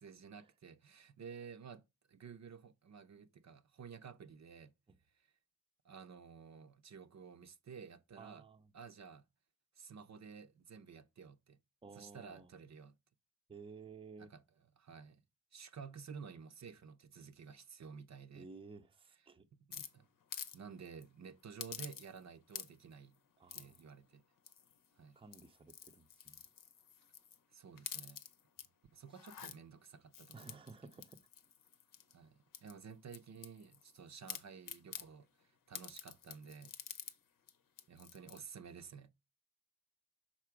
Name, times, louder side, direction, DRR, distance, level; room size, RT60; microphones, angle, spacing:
voice 1, 0.0-1.8 2.1-4.7 5.1-5.3 5.8-8.5 8.7-9.2 9.7-11.6 11.9-12.9 14.2-14.4 14.8-15.2 15.5-18.5 19.5-20.1 20.5-23.2 23.5-24.2 25.0-25.2 27.5-28.2 28.9-30.6 32.1-36.8 37.9-39.1, right 6 dB, 50° right, 0.7 m, -53 dB
voice 2, 8.2-8.7 11.8-12.5 13.5-14.3 18.3-19.5 23.4-23.8 25.2-26.4 30.3-31.3, right 4 dB, 15° right, 0.6 m, -54 dB
sound 1, 19.7-20.6 20.9-21.0 21.6-22.2 22.5-22.9 23.5-23.8 24.5-24.9 25.2-27.4 27.8-28.7 29.1-29.6 30.1-32.1 32.5-34.0 34.3-35.1 35.7-37.2 37.5-37.6 37.8-38.4, left 8 dB, 65° left, 0.8 m, -49 dB
5.9 x 4.2 x 4.7 m
cardioid pair, 75°, 35 cm